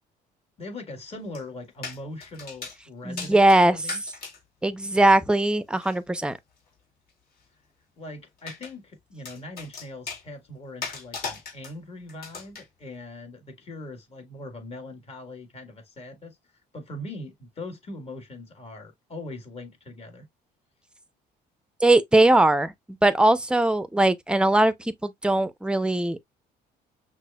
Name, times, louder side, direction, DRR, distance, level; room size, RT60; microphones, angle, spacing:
voice 1, 0.6-4.0 8.0-16.4 16.7-20.3, left 2 dB, 35° left, 1.7 m, -41 dB
sound 1, 1.3-1.4 1.8-2.8 3.2-4.4 5.8-6.0 8.4-8.7 9.3-10.2 10.8-11.7 12.1-12.7, left 5 dB, 60° left, 2.2 m, -37 dB
voice 2, 3.0-3.8 4.6-6.4 21.8-22.7 23.0-26.2, right 2 dB, 5° right, 0.5 m, -20 dB
5.9 x 2.5 x 2.2 m
cardioid pair, 110°, 17 cm